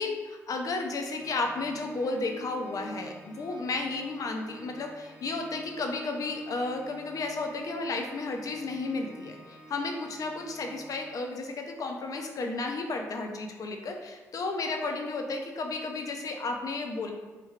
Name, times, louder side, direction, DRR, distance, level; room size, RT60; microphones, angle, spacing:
voice 1, 0.0-17.1, left 3 dB, 55° left, 3 dB, 0.5 m, -33 dB
Organ, 1.0-11.7, right 2 dB, 25° right, 0.9 m, -48 dB
3.2 x 2.2 x 3.4 m, 1.2 s
hypercardioid pair, 50°, 7 cm